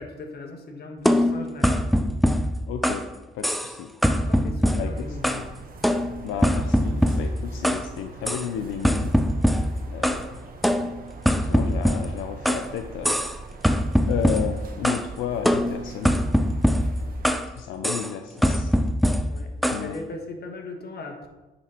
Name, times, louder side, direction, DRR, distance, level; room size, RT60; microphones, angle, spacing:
voice 1, 0.0-1.8 4.3-5.4 19.3-19.5 19.8-21.3, left 2 dB, 55° left, 3 dB, 1.4 m, -38 dB
sound 1, 1.1-3.1 3.4-3.8 4.0-5.5 5.8-7.9 8.3-8.5 8.8-10.3 10.6-12.7 13.0-13.4 13.6-15.1 15.5-17.5 17.8-18.1 18.4-19.9, equal, ahead, 0.4 m, -23 dB
voice 2, 2.7-3.1 3.3-4.3 4.8-5.5 6.2-9.1 9.9-10.4 11.3-13.2 14.1-16.2 17.6-18.7 19.7-20.0, left 8 dB, 85° left, 6 dB, 0.5 m, -33 dB
sound 2, 4.9-17.4, right 3 dB, 45° right, 1.1 m, -42 dB
9.0 x 4.2 x 4.4 m, 1.1 s
cardioid pair, 90°, 20 cm